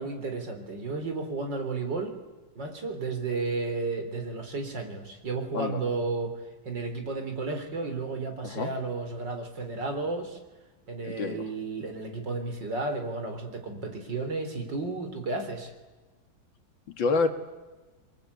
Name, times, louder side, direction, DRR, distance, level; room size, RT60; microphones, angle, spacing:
voice 1, 0.0-2.2 2.6-6.4 6.6-10.4 10.9-15.7, right 3 dB, 65° right, 5 dB, 4.5 m, -33 dB
voice 2, 8.4-8.7 11.0-11.4 16.9-17.3, left 4 dB, 80° left, 7 dB, 2.7 m, -28 dB
29.5 x 22.5 x 8.5 m, 1.2 s
omnidirectional pair, 2.1 m